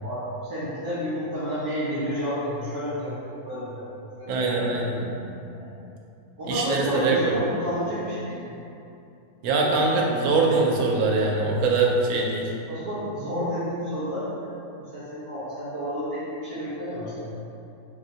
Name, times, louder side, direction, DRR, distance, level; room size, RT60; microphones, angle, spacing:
voice 1, 0.0-3.8 4.2-5.7 6.4-8.5 12.7-14.3 14.8-17.4, equal, 30° right, -13 dB, 1.1 m, -31 dB
voice 2, 4.3-5.1 6.5-7.3 9.4-12.5, right 3 dB, 80° right, -1 dB, 1.1 m, -23 dB
3.6 x 3.5 x 2.8 m, 2.7 s
omnidirectional pair, 1.6 m